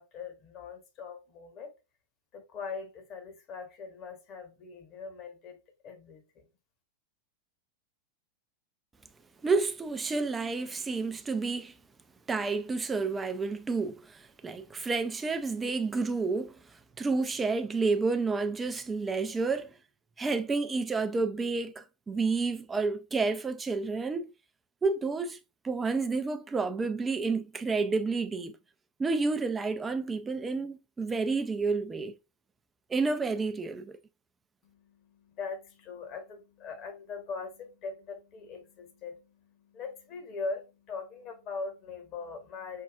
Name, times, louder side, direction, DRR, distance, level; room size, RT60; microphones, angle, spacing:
voice 1, 0.0-1.7 2.3-5.6 5.8-6.4 34.6-42.8, left 4 dB, 35° left, 1.2 m, -41 dB
voice 2, 9.4-11.7 12.3-16.6 17.0-19.7 20.2-24.3 24.8-25.4 25.6-28.6 29.0-32.1 32.9-34.0, right 4 dB, 15° right, 0.5 m, -30 dB
5.4 x 2.4 x 2.4 m
figure-of-eight pair, 90°, 0 cm